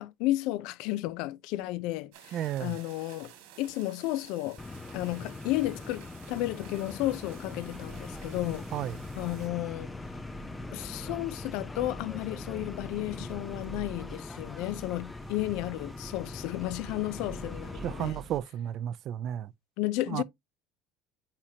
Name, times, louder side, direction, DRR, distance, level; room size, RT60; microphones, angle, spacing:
voice 1, 0.0-3.3 3.6-4.6 4.9-8.7 9.2-9.9 10.7-18.2 19.8-20.2, left 16 dB, 70° left, 0.5 m, -33 dB
sound 1, 2.1-9.5, right 11 dB, 85° right, 2.2 m, -53 dB
voice 2, 2.3-2.8 8.7-9.0 17.8-19.5 20.1-20.2, right 11 dB, 50° right, 0.4 m, -33 dB
sound 2, 4.6-18.1, left 3 dB, 15° left, 0.4 m, -42 dB
sound 3, 7.7-18.4, right 4 dB, 25° right, 0.8 m, -48 dB
8.7 x 4.4 x 2.8 m
cardioid pair, 125°, 0 cm